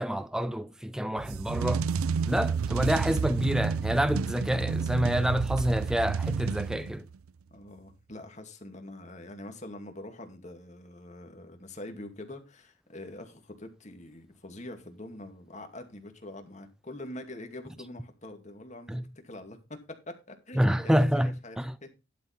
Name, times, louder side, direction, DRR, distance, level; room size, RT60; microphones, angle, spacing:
voice 1, 0.0-1.9 2.2-7.0 18.9-19.0 20.6-21.7, equal, 5° right, 0.4 m, -27 dB
sound 1, 1.2-7.2, right 6 dB, 90° right, 0.5 m, -30 dB
voice 2, 7.5-19.8 20.1-21.9, left 1 dB, 35° left, 2.2 m, -44 dB
11.5 x 6.0 x 4.4 m
head